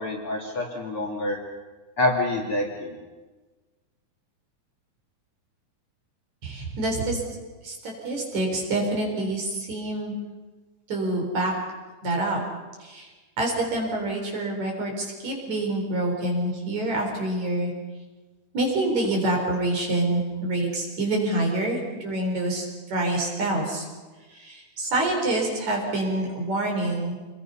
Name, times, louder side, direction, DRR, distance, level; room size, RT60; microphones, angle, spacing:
voice 1, 0.0-1.4 2.0-3.0, left 1 dB, 40° left, 0 dB, 2.8 m, -26 dB
voice 2, 6.4-7.2 7.6-10.1 10.9-11.5 12.0-12.4 12.8-13.1 13.4-17.7 18.5-23.9 24.3-27.2, right 2 dB, 45° right, 0 dB, 5.2 m, -26 dB
27.0 x 21.5 x 5.7 m, 1.3 s
omnidirectional pair, 4.4 m